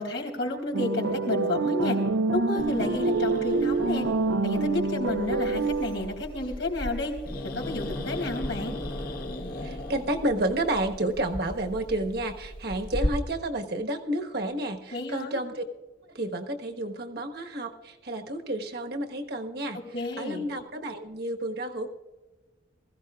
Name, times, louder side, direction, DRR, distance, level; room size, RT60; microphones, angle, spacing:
voice 1, 0.0-2.0 2.3-4.1 4.4-7.1 7.6-8.8 14.9-15.4 19.9-20.5, left 2 dB, 85° left, 2 dB, 3.8 m, -31 dB
sound 1, 0.7-6.2, right 3 dB, 85° right, 0.6 m, -26 dB
Growling, 2.6-13.1, left 1 dB, 55° left, 1.4 m, -37 dB
voice 2, 9.6-15.6 16.1-21.9, right 1 dB, 60° right, 4 dB, 1.3 m, -31 dB
21.0 x 15.5 x 2.4 m, 1.2 s
head